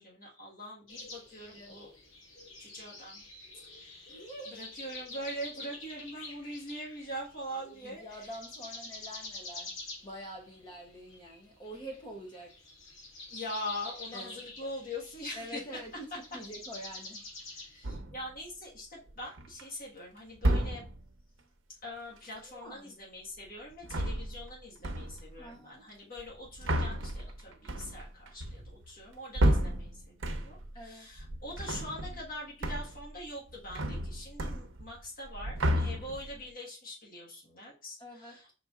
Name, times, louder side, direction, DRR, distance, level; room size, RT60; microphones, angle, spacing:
voice 1, 0.0-1.9 2.6-3.2 3.7-4.1 4.5-8.3 13.3-15.7 17.5-20.9 21.8-38.5, left 1 dB, 45° left, -3 dB, 1.4 m, -43 dB
sound 1, 0.9-7.4 7.7-17.9, left 2 dB, 75° left, 1.7 m, -47 dB
voice 2, 4.1-4.6 7.6-9.7 10.0-12.5 14.1-14.3 15.3-16.1 16.3-17.2 22.5-23.0 25.4-25.8 30.7-31.1 38.0-38.5, right 1 dB, 25° left, 0 dB, 0.7 m, -46 dB
sound 2, 17.8-18.3 19.1-19.6 20.4-21.1 23.7-24.6 24.8-25.4 26.2-30.8 31.1-32.3 32.6-33.1 33.4-35.0 35.3-36.4, right 1 dB, 75° right, 0.7 m, -32 dB
5.3 x 4.1 x 2.4 m, 0.36 s
head